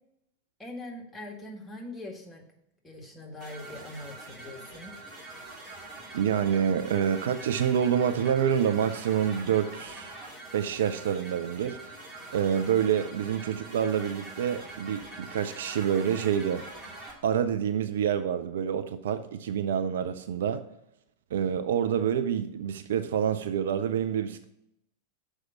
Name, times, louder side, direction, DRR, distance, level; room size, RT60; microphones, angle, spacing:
voice 1, 0.6-2.4 2.8-4.9, left 1 dB, 5° left, 0 dB, 1.8 m, -42 dB
sound 1, 3.4-17.1, right 2 dB, 25° right, 2.4 m, -44 dB
voice 2, 6.1-10.1 10.5-11.9 12.3-16.6 17.2-20.6 21.3-24.5, right 8 dB, 60° right, 10 dB, 0.4 m, -27 dB
6.4 x 4.8 x 6.8 m, 0.81 s
figure-of-eight pair, 90°, 0 cm